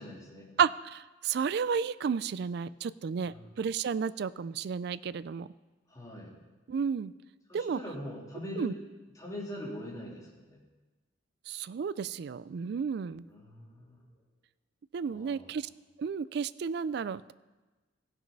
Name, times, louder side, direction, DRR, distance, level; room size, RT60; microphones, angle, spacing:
voice 1, 0.0-0.5 3.2-3.5 5.9-6.3 7.5-8.8 9.1-10.6 13.3-14.0 15.1-15.6, left 1 dB, 20° left, -5 dB, 3.0 m, -42 dB
voice 2, 0.6-5.5 6.7-7.1 7.5-7.8 8.6-8.7 11.5-13.2 14.9-15.7 16.0-17.3, right 6 dB, 55° right, 17 dB, 0.3 m, -32 dB
16.5 x 6.3 x 5.3 m, 1.2 s
head